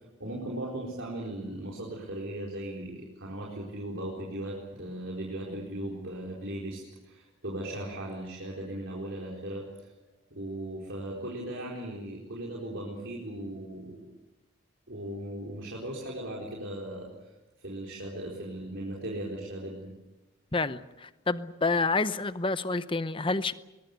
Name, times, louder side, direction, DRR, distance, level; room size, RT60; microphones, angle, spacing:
voice 1, 0.2-9.9 10.3-14.1 14.9-17.1 17.6-19.9, right 1 dB, 65° right, -4 dB, 4.3 m, -37 dB
voice 2, 20.5-23.5, left 3 dB, 25° left, 13 dB, 0.8 m, -28 dB
21.5 x 21.5 x 8.1 m, 1.1 s
head